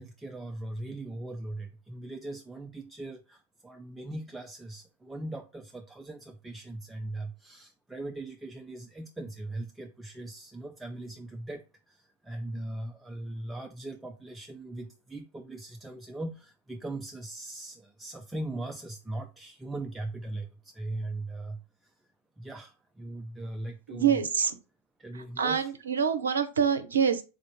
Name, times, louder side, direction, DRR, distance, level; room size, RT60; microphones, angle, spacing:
voice 1, 0.0-21.9 22.4-24.2 25.0-25.7, right 2 dB, 5° right, 0.3 m, -39 dB
voice 2, 23.9-24.6 25.1-27.2, right 7 dB, 70° right, 0.5 m, -26 dB
3.8 x 2.4 x 4.5 m
figure-of-eight pair, 90°, 0 cm